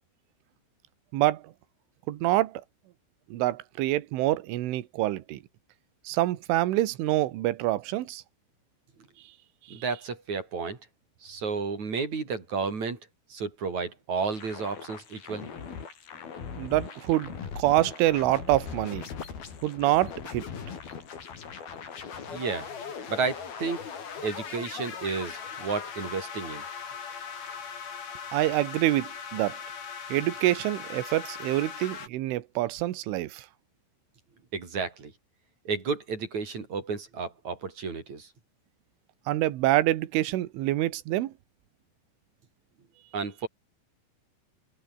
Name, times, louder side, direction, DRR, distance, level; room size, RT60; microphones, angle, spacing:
voice 1, 2.1-2.6 3.3-5.4 6.1-8.2 16.6-19.1 19.6-20.5 28.3-29.6 30.1-33.5 39.3-41.3, right 16 dB, 75° right, 3.9 m, -26 dB
voice 2, 9.7-10.8 11.2-13.0 13.3-15.5 22.3-22.7 23.1-23.8 24.2-26.6 34.5-35.1 35.7-38.3 43.1-43.5, right 5 dB, 35° right, 5.7 m, -32 dB
sound 1, 14.3-32.1, left 6 dB, 50° left, 5.6 m, -40 dB
omnidirectional pair, 5.9 m